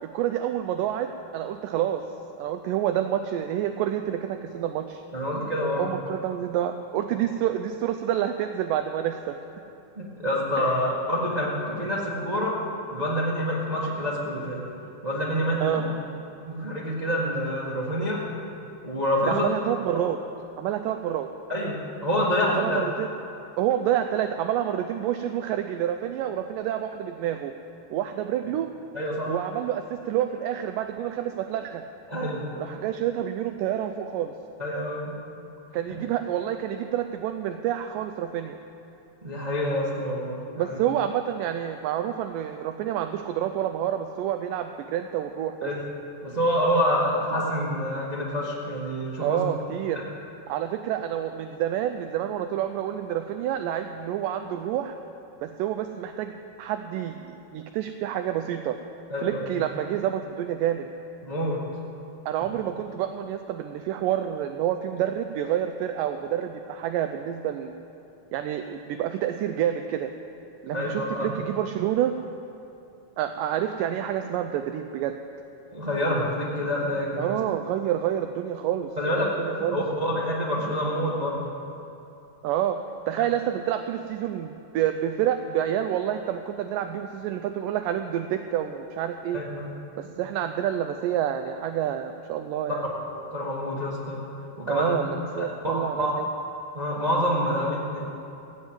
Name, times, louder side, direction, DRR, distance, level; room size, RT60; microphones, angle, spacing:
voice 1, 0.0-2.1 2.4-5.0 5.8-9.4 10.6-10.9 15.6-15.8 19.3-20.2 20.6-21.3 22.5-23.1 23.6-27.5 27.9-28.7 29.3-31.8 32.6-34.3 35.7-38.6 40.6-45.7 49.2-50.0 50.5-55.0 55.4-58.8 59.2-60.9 62.3-67.7 68.3-70.1 70.6-72.1 73.2-75.2 77.2-79.9 82.4-82.8 83.1-89.4 90.0-92.8 94.7-96.3, right 11 dB, 80° right, 7 dB, 2.1 m, -28 dB
voice 2, 5.1-5.8 9.9-12.5 12.9-14.6 15.0-15.8 16.4-18.2 18.8-19.4 21.5-22.8 28.9-29.3 32.1-32.8 34.6-35.2 39.2-40.8 45.6-45.8 46.2-49.4 59.1-59.4 61.2-61.6 70.7-71.3 75.7-77.4 79.0-79.3 79.7-81.4 89.3-89.7 93.1-94.2 94.6-94.9 95.4-96.1 96.7-98.0, equal, 25° right, -5 dB, 0.9 m, -27 dB
16.0 x 7.7 x 8.9 m, 2.8 s
omnidirectional pair, 3.9 m